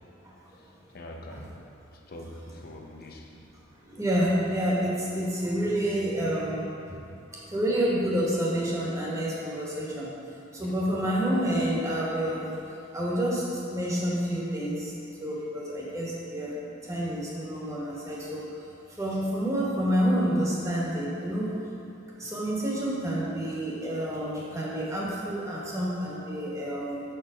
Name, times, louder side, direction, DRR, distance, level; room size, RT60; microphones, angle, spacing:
voice 1, 0.5-1.6 1.9-3.3 10.6-10.9 17.6-17.7, left 1 dB, 50° left, 1 dB, 0.7 m, -44 dB
voice 2, 3.9-6.6 6.9-7.0 7.3-10.2 10.5-12.6 12.9-14.9 15.2-18.6 18.9-21.5 22.2-27.0, equal, 15° right, -5 dB, 1.2 m, -28 dB
6.9 x 4.6 x 5.0 m, 2.6 s
head